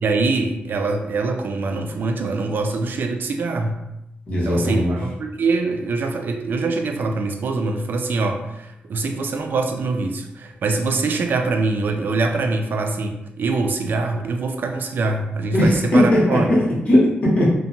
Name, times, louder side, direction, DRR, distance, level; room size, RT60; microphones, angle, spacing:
voice 1, 0.0-3.8 4.4-16.5, right 3 dB, 55° right, 5 dB, 0.3 m, -24 dB
voice 2, 4.3-5.0 15.5-17.5, left 1 dB, 40° left, -6 dB, 0.9 m, -18 dB
2.7 x 2.1 x 2.5 m, 0.88 s
wide cardioid pair, 145°, 4 cm